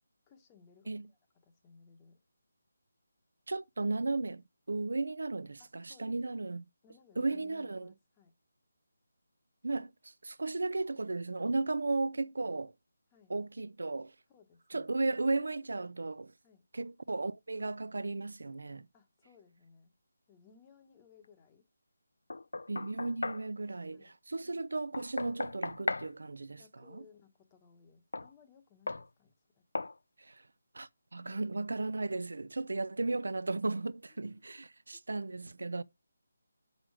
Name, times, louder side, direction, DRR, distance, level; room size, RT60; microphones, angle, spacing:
voice 1, 0.3-2.2 5.6-6.2 6.8-8.3 13.1-13.3 14.3-14.9 16.4-16.6 18.9-19.9 20.3-21.6 23.9-24.1 26.6-29.6 31.1-31.4 34.2-34.3, left 6 dB, 10° left, 1.0 m, -62 dB
voice 2, 3.5-6.6 7.2-7.9 9.6-12.7 13.3-14.1 14.7-16.3 16.7-18.9 22.7-26.6 26.9-27.0 30.2-30.4 30.7-35.8, right 3 dB, 75° right, 0.5 m, -35 dB
Knock, 22.3-23.5 24.9-26.1 28.1-28.3 28.9-29.1 29.7-30.0, left 3 dB, 80° left, 0.5 m, -36 dB
7.5 x 6.4 x 4.7 m
hypercardioid pair, 175°, 0 cm